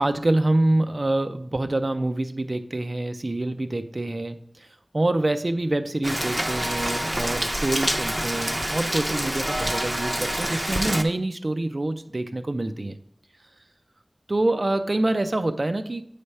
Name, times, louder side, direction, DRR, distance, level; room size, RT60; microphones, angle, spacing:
voice 1, 0.0-4.7 4.9-13.0 14.3-16.0, right 2 dB, 55° right, 8 dB, 0.5 m, -26 dB
Rain, 6.0-11.0, equal, 15° right, 0.6 m, -27 dB
8.0 x 3.3 x 5.4 m, 0.66 s
wide cardioid pair, 55°, 0 cm